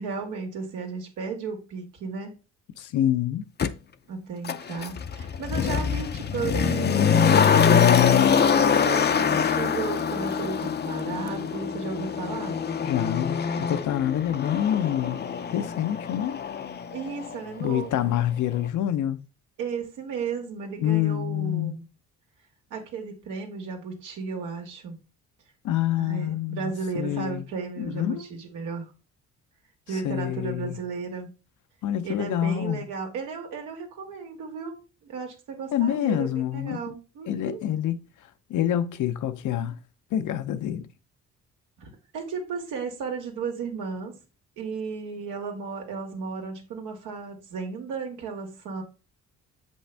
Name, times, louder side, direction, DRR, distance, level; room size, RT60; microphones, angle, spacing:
voice 1, 0.0-2.3 4.1-7.3 8.4-12.5 16.9-18.1 19.6-21.8 22.7-25.0 26.0-28.9 29.9-31.3 32.0-37.6 41.8-44.2 44.6-48.8, right 5 dB, 90° right, 2.0 m, -34 dB
voice 2, 2.8-3.5 12.8-15.2 15.5-16.4 17.6-19.2 20.8-21.7 25.6-27.4 27.8-28.3 30.0-30.8 31.8-32.9 35.7-36.8 37.3-38.0 38.5-39.8 40.1-40.9, left 11 dB, 75° left, 0.8 m, -27 dB
Motor vehicle (road), 3.6-3.7 4.4-17.4 17.7-17.8, left 7 dB, 35° left, 0.6 m, -24 dB
7.4 x 5.4 x 3.4 m
cardioid pair, 90°, 30 cm